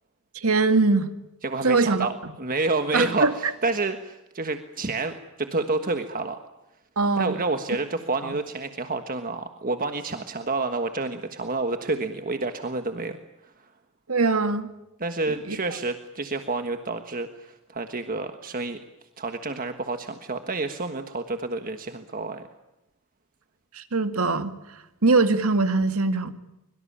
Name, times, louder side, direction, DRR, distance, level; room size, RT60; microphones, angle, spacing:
voice 1, 0.3-1.1 1.6-2.3 2.9-3.5 7.0-7.3 8.2-8.3 14.1-14.7 15.5-15.6 23.7-26.3, right 3 dB, 80° right, 9 dB, 2.1 m, -22 dB
voice 2, 1.4-6.4 7.2-13.2 13.4-13.5 15.0-18.8 19.2-22.4, right 3 dB, 40° right, 7 dB, 1.5 m, -29 dB
24.5 x 23.5 x 8.8 m, 0.93 s
head